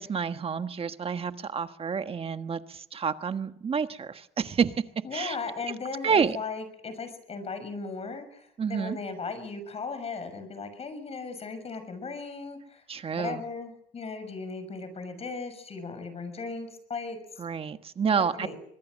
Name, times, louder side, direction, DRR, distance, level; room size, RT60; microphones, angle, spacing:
voice 1, 0.0-4.7 5.1-5.4 6.0-6.4 8.6-9.0 12.9-13.4 17.4-18.5, right 6 dB, 35° right, 9 dB, 1.4 m, -29 dB
voice 2, 5.0-12.8 13.1-17.2 18.4-18.6, left 4 dB, 35° left, 10 dB, 6.4 m, -37 dB
24.5 x 21.5 x 6.4 m, 0.72 s
cardioid pair, 110°, 17 cm